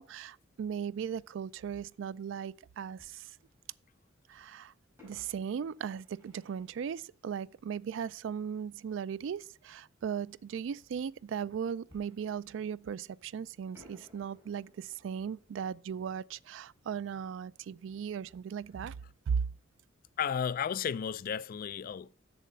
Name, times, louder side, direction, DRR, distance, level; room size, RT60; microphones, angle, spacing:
voice 1, 0.0-3.3 4.3-4.7 5.0-19.0 19.3-19.5, right 7 dB, 70° right, 0.3 m, -37 dB
Fireworks, 3.0-4.1 5.0-8.4 11.9-13.3 13.7-18.3 18.5-18.6 19.2-19.4, left 2 dB, 15° right, 4.5 m, -64 dB
voice 2, 20.2-22.1, left 8 dB, 45° left, 0.3 m, -33 dB
7.5 x 7.1 x 5.4 m
head